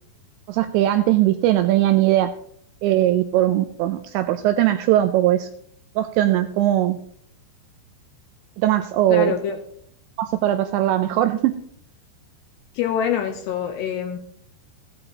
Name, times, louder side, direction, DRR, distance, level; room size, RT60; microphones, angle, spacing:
voice 1, 0.5-2.3 2.8-5.5 6.0-7.0 8.6-9.3 10.4-11.6, right 13 dB, 85° right, 9 dB, 2.6 m, -19 dB
voice 2, 9.1-9.6 12.7-14.2, left 8 dB, 75° left, 5 dB, 2.6 m, -25 dB
15.5 x 11.5 x 2.9 m, 0.67 s
omnidirectional pair, 5.6 m